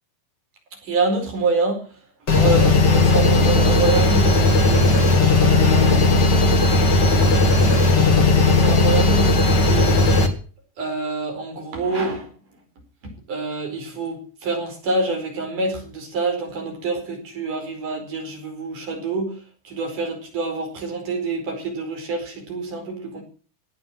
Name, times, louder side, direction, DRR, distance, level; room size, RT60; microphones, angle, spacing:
voice 1, 0.8-1.8 2.3-4.9 5.2-6.1 6.8-7.5 8.4-9.9 10.8-12.3 13.0-23.2, right 3 dB, 70° right, 2 dB, 6.4 m, -27 dB
sound 1, 2.3-10.3, left 2 dB, 35° left, 2.6 m, -16 dB
18.5 x 8.4 x 7.6 m, 0.40 s
omnidirectional pair, 3.8 m